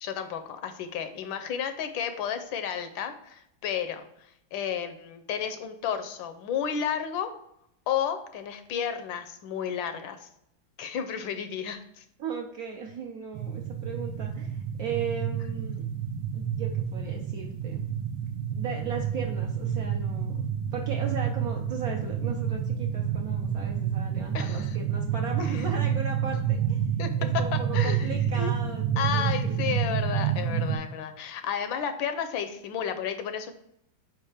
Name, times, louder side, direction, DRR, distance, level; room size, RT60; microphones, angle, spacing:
voice 1, 0.0-7.3 7.9-10.3 10.8-12.0 24.3-24.8 25.5-25.6 27.0-27.1 27.7-28.5 29.0-33.5, left 8 dB, 75° left, 8 dB, 1.3 m, -32 dB
voice 2, 12.2-15.8 16.3-17.8 18.5-20.4 20.7-26.8 27.2-29.5, right 5 dB, 70° right, 0 dB, 0.9 m, -37 dB
sound 1, 13.3-30.8, right 8 dB, 85° right, 1.4 m, -29 dB
4.8 x 4.4 x 4.9 m, 0.74 s
omnidirectional pair, 2.2 m